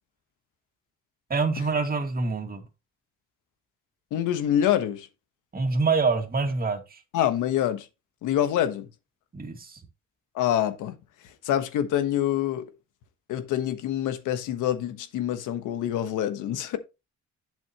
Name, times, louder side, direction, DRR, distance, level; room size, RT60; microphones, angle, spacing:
voice 1, 1.3-2.6 5.5-7.0 9.3-9.8, right 4 dB, 30° right, 2.1 m, -26 dB
voice 2, 4.1-5.1 7.1-7.9 8.2-8.9 10.3-10.9 11.4-12.6 13.3-16.8, left 11 dB, 90° left, 1.3 m, -26 dB
8.5 x 7.2 x 3.0 m
cardioid pair, 90°, 30 cm